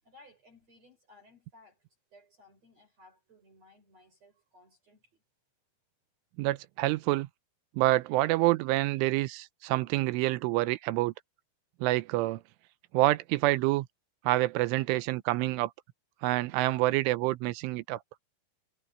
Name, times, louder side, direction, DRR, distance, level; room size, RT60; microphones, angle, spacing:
voice 1, 0.0-5.2, left 2 dB, 35° right, 5.7 m, -59 dB
voice 2, 6.4-7.3 7.8-11.1 11.8-12.4 12.9-13.9 14.2-15.7 16.2-18.0, right 18 dB, 90° right, 3.2 m, -27 dB
omnidirectional pair, 5.6 m